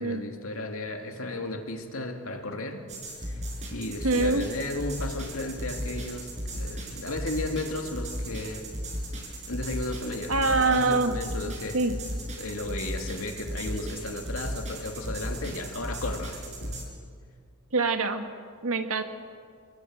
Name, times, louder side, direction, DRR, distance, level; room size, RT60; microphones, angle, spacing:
voice 1, 0.0-2.9 3.2-3.4 3.7-8.7 9.5-11.8 12.4-16.9, left 2 dB, 70° left, 4 dB, 2.7 m, -34 dB
sound 1, 2.9-16.8, equal, 30° right, 5.4 m, -36 dB
voice 2, 4.0-4.4 10.3-11.2 11.7-11.9 17.7-18.3 18.6-19.0, right 3 dB, 70° right, 6 dB, 1.9 m, -24 dB
28.0 x 21.0 x 8.0 m, 2.1 s
head